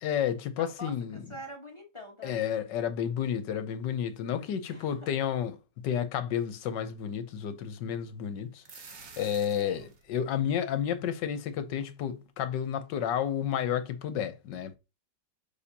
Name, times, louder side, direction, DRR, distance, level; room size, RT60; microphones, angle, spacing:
voice 1, 0.0-1.2 2.2-5.6 5.8-8.6 9.2-14.8, left 9 dB, 75° left, 1.4 m, -31 dB
voice 2, 0.6-2.5 4.7-5.1 9.5-9.9, equal, 20° left, 1.2 m, -45 dB
sound 1, 8.4-10.1, right 5 dB, 50° right, 1.4 m, -49 dB
6.8 x 5.0 x 2.8 m
omnidirectional pair, 2.0 m